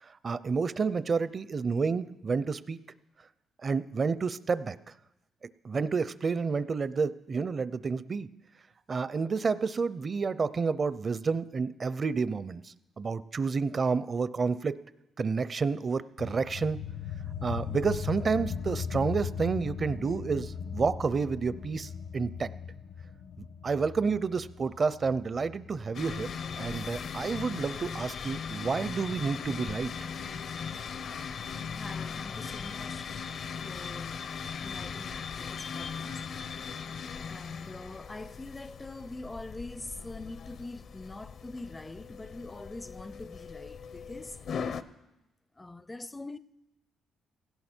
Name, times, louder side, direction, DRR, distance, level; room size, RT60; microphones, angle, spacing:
voice 1, 0.0-2.8 3.6-4.8 5.6-8.3 8.9-14.8 15.2-16.8 17.4-22.5 23.6-26.3 26.6-29.9, right 5 dB, 40° right, 0.6 m, -30 dB
sound 1, 16.2-27.3, left 7 dB, 85° left, 1.3 m, -39 dB
sound 2, 25.9-44.8, left 6 dB, 60° left, 0.7 m, -39 dB
voice 2, 31.7-33.1 33.6-34.2 34.6-36.2 37.3-44.6 45.6-46.4, left 2 dB, 15° left, 0.4 m, -44 dB
17.0 x 16.0 x 4.5 m
cardioid pair, 90°, 0 cm